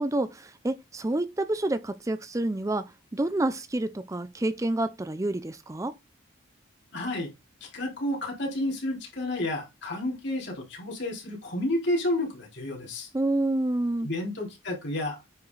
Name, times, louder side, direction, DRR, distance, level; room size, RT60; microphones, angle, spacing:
voice 1, 0.0-5.9 13.1-14.1, right 2 dB, 15° right, 0.4 m, -28 dB
voice 2, 6.9-7.3 7.6-13.1 14.0-15.2, left 1 dB, 60° left, 4.0 m, -31 dB
9.5 x 4.8 x 4.0 m
head